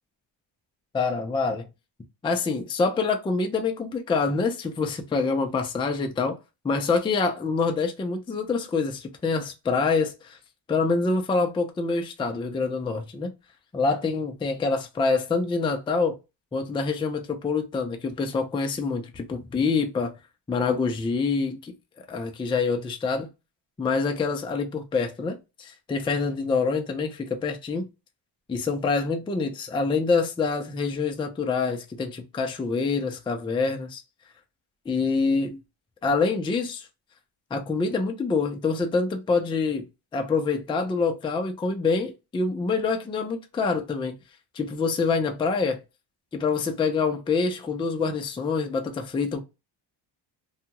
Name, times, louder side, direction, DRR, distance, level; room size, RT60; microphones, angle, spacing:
voice 1, 0.9-1.7 2.2-6.4 6.6-10.4 10.7-13.3 13.7-16.2 16.5-20.1 20.5-23.3 23.8-27.9 28.5-34.0 34.9-35.6 36.0-36.9 37.5-39.8 40.1-44.2 44.5-45.8 46.3-49.4, left 4 dB, 10° left, 0.3 m, -26 dB
2.7 x 2.3 x 2.8 m
cardioid pair, 125°, 47 cm